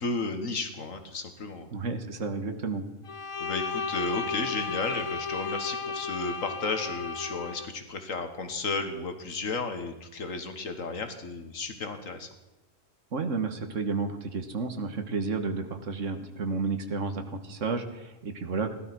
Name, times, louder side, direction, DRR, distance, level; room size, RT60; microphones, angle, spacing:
voice 1, 0.0-1.7 3.4-12.3, left 3 dB, 90° left, 7 dB, 2.1 m, -33 dB
voice 2, 1.7-2.9 13.1-18.8, right 4 dB, 75° right, 7 dB, 1.8 m, -31 dB
Bowed string instrument, 3.0-7.7, left 5 dB, 45° left, 0.4 m, -34 dB
16.0 x 12.0 x 6.1 m, 1.1 s
omnidirectional pair, 1.3 m